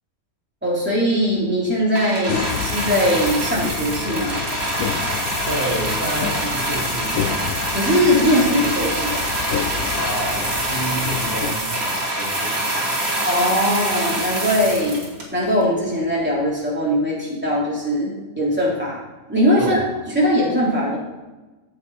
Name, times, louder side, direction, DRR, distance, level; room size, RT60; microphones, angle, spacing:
voice 1, 0.6-4.4 7.7-9.3 13.2-19.0 19.3-19.8 20.1-21.0, equal, 5° right, -6 dB, 3.5 m, -20 dB
sound 1, 1.9-15.6 16.4-16.5, right 1 dB, 75° right, 3.1 m, -25 dB
sound 2, 2.3-11.6, left 9 dB, 85° left, 1.1 m, -30 dB
voice 2, 5.4-7.6 9.9-13.1 19.6-19.9, right 1 dB, 40° right, -6 dB, 2.8 m, -30 dB
14.0 x 7.8 x 4.2 m, 1.1 s
omnidirectional pair, 1.5 m